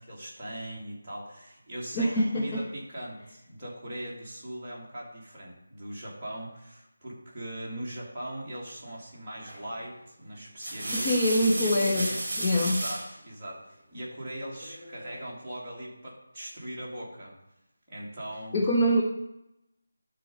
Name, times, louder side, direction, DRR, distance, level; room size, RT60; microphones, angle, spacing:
voice 1, 0.0-11.2 11.5-12.2 12.6-17.3 17.9-18.5, right 1 dB, 5° right, -13 dB, 2.2 m, -40 dB
voice 2, 1.9-2.6 10.9-12.1 12.4-12.8 18.5-19.0, equal, 15° left, -2 dB, 0.5 m, -24 dB
sound 1, 9.5-9.8 10.4-13.1 14.6-15.2, right 1 dB, 25° right, 3.1 m, -33 dB
12.0 x 4.0 x 5.3 m, 0.87 s
figure-of-eight pair, 175°, 0 cm